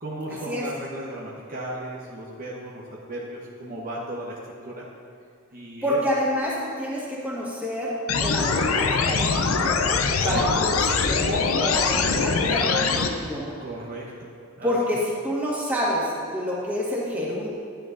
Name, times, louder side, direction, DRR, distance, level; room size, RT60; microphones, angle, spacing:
voice 1, 0.0-4.4 4.6-4.8 5.5-6.0 8.4-8.6 10.2-10.6 13.6-14.7, right 1 dB, 45° right, -4 dB, 1.0 m, -36 dB
voice 2, 5.8-7.9 8.2-13.5 14.6-17.5, equal, 10° right, -6 dB, 1.7 m, -28 dB
sound 1, 8.1-13.1, left 5 dB, 85° left, 0.6 m, -23 dB
11.0 x 9.1 x 2.6 m, 2.4 s
head